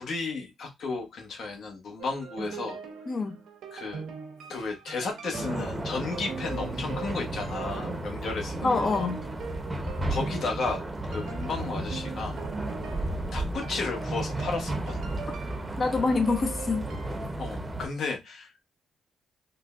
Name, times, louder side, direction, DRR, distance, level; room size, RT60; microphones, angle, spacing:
voice 1, 0.0-2.8 3.7-4.0 4.5-9.1 10.1-12.4 13.3-15.1 17.4-18.6, left 4 dB, 65° left, 1.0 m, -33 dB
sound 1, 2.0-17.3, right 5 dB, 75° right, 0.8 m, -41 dB
voice 2, 3.1-3.4 8.6-9.2 15.8-16.9, left 4 dB, 35° left, 0.4 m, -26 dB
sound 2, 5.3-17.9, right 1 dB, 20° right, 0.7 m, -34 dB
3.7 x 2.1 x 2.4 m
cardioid pair, 90°, 0 cm